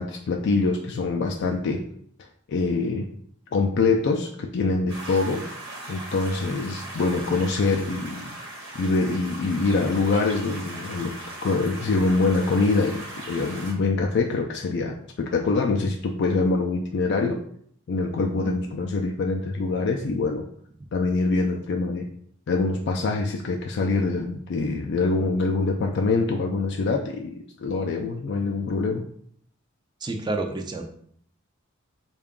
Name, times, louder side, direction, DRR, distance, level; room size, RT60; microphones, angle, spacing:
voice 1, 0.0-1.8 2.5-3.1 3.5-5.4 5.9-8.4 8.7-11.1 11.4-17.4 17.9-20.5 20.9-22.1 22.5-27.3 27.6-29.0, left 3 dB, 60° left, 1 dB, 0.3 m, -24 dB
sound 1, 4.9-13.7, right 1 dB, 60° right, 1.1 m, -38 dB
voice 2, 30.0-30.8, right 2 dB, 20° right, 3 dB, 0.4 m, -29 dB
3.7 x 2.3 x 3.5 m, 0.64 s
head